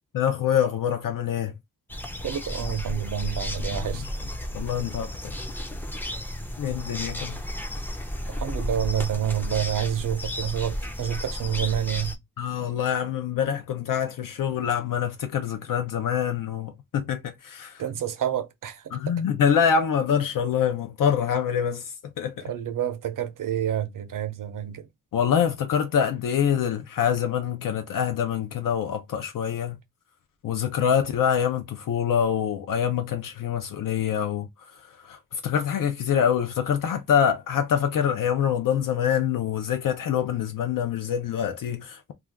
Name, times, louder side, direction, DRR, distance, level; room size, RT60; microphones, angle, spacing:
voice 1, 0.1-1.5 3.9-4.1 4.5-5.4 6.6-7.4 12.4-17.8 18.9-22.5 25.1-29.8 30.4-42.1, left 8 dB, 85° left, 0.5 m, -25 dB
sound 1, 1.9-12.2, left 1 dB, 5° left, 0.4 m, -33 dB
voice 2, 2.2-4.0 8.3-12.2 17.8-18.8 22.4-24.9, right 10 dB, 75° right, 0.6 m, -28 dB
2.4 x 2.2 x 3.3 m
wide cardioid pair, 140°, 32 cm